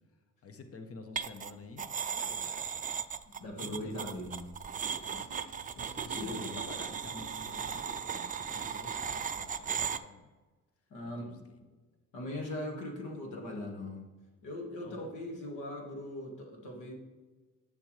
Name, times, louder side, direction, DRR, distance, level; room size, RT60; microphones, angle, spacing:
voice 1, 0.4-2.8 3.6-4.3 5.0-5.6 6.0-10.3 11.0-11.6 14.7-15.0, left 4 dB, 50° left, 6 dB, 1.1 m, -50 dB
sound 1, 1.2-1.5 1.8-10.0, right 7 dB, 25° right, 0.4 m, -37 dB
voice 2, 3.3-4.5 5.1-5.4 5.8-6.6 10.9-11.6 12.1-14.1 14.4-16.9, left 1 dB, 85° left, 1 dB, 1.9 m, -40 dB
8.4 x 6.9 x 3.3 m, 1.3 s
cardioid pair, 90°, 30 cm